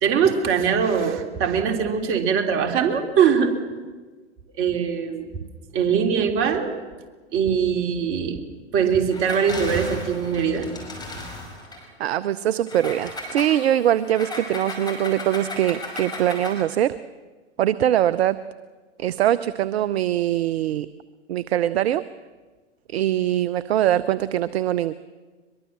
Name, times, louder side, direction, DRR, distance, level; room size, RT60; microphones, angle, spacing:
voice 1, 0.0-3.5 4.6-5.3 5.7-6.7 7.3-8.4 8.7-10.7, right 7 dB, 35° right, 5 dB, 3.4 m, -22 dB
Engine, 9.1-11.8 12.7-16.7, left 2 dB, 10° left, 5.6 m, -35 dB
voice 2, 12.0-17.0 17.6-18.4 19.0-20.9 21.3-22.0 22.9-24.9, right 12 dB, 60° right, 16 dB, 0.8 m, -22 dB
23.0 x 22.5 x 7.3 m, 1.4 s
figure-of-eight pair, 105°, 36 cm